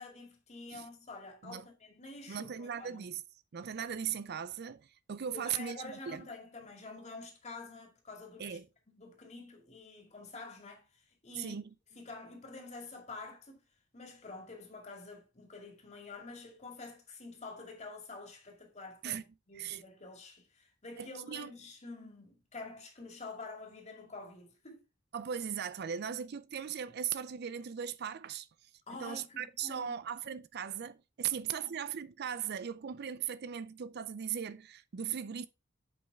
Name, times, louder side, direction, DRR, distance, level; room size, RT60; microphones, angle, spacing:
voice 1, 0.0-3.0 5.3-8.6 8.9-10.9 11.2-11.6 11.9-13.6 13.9-19.2 19.5-24.8 28.9-29.9 31.5-31.7, left 3 dB, 35° left, 2.3 m, -48 dB
voice 2, 2.3-3.2 3.5-6.3 8.4-8.7 11.4-11.7 19.0-19.2 19.5-19.8 21.0-21.5 25.1-35.5, right 8 dB, 55° right, 0.5 m, -38 dB
8.0 x 5.5 x 3.5 m
head